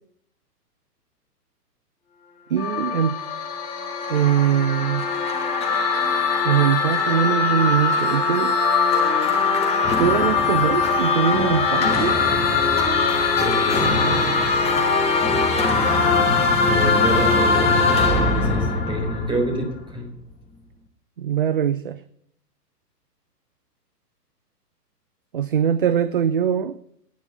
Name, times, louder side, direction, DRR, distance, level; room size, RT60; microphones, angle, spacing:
voice 1, 2.5-3.2 4.1-5.1 6.4-8.5 10.0-12.2 21.2-22.0 25.3-26.8, right 9 dB, 35° right, 14 dB, 0.4 m, -22 dB
sound 1, 2.6-14.6, left 6 dB, 35° left, 2.7 m, -26 dB
sound 2, 2.9-19.9, left 3 dB, 10° left, 1.9 m, -22 dB
voice 2, 13.3-14.2 16.7-20.1, equal, 10° right, 2 dB, 4.0 m, -27 dB
10.5 x 10.0 x 6.7 m, 0.68 s
hypercardioid pair, 125°, 49 cm